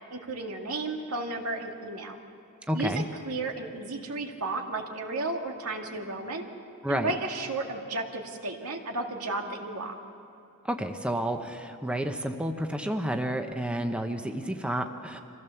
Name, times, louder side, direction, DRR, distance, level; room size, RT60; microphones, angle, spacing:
voice 1, 0.1-2.2 2.7-6.5 6.9-9.9, right 2 dB, 80° right, 2 dB, 2.0 m, -33 dB
voice 2, 2.7-3.0 6.8-7.1 10.6-15.2, right 1 dB, 5° right, 5 dB, 0.9 m, -30 dB
25.5 x 15.5 x 7.1 m, 2.8 s
head